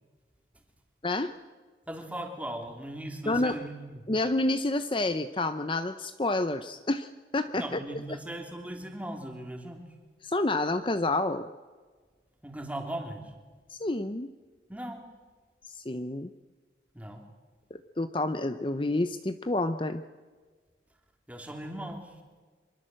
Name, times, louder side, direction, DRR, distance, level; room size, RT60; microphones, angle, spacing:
voice 1, 1.9-4.0 7.6-9.9 12.4-13.3 14.7-15.0 16.9-17.2 21.3-22.1, right 1 dB, 10° right, 3 dB, 3.1 m, -38 dB
voice 2, 3.3-3.6 4.1-7.8 10.2-11.5 13.7-14.3 15.7-16.3 17.7-20.0, left 2 dB, 30° left, 10 dB, 0.7 m, -29 dB
25.0 x 23.0 x 7.7 m, 1.4 s
head